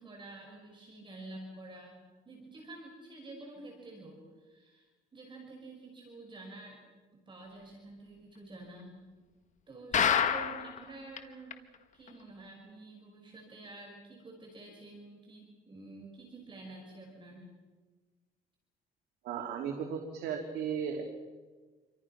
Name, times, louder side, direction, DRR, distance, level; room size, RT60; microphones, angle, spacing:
voice 1, 0.0-4.8 5.1-6.8 7.1-9.0 9.7-17.5, right 2 dB, 30° right, 1 dB, 5.8 m, -49 dB
sound 1, 9.9-10.8 11.2-11.3 11.5-11.6 12.1-12.2, left 8 dB, 45° left, 1.9 m, -27 dB
voice 2, 19.2-21.0, right 7 dB, 80° right, 2 dB, 3.1 m, -35 dB
28.5 x 25.0 x 6.0 m, 1.4 s
cardioid pair, 110°, 17 cm